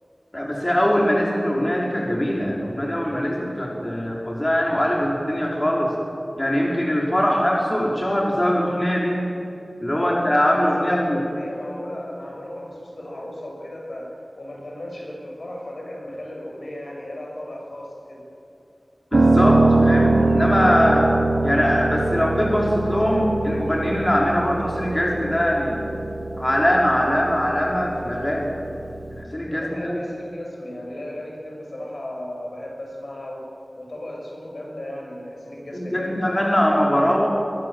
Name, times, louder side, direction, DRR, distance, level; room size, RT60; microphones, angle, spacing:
voice 1, 0.3-5.9 6.4-9.3 9.8-11.2 19.1-21.1 21.4-25.9 26.4-28.5 29.1-30.0 35.7-37.3, equal, 25° left, -2 dB, 4.1 m, -22 dB
voice 2, 9.9-14.1 14.4-18.2 29.5-33.4 33.8-36.3, left 1 dB, 65° left, -1 dB, 6.9 m, -35 dB
Piano, 19.1-29.2, right 2 dB, 90° right, 1.9 m, -23 dB
23.0 x 21.5 x 7.7 m, 2.7 s
wide cardioid pair, 45°, 0 cm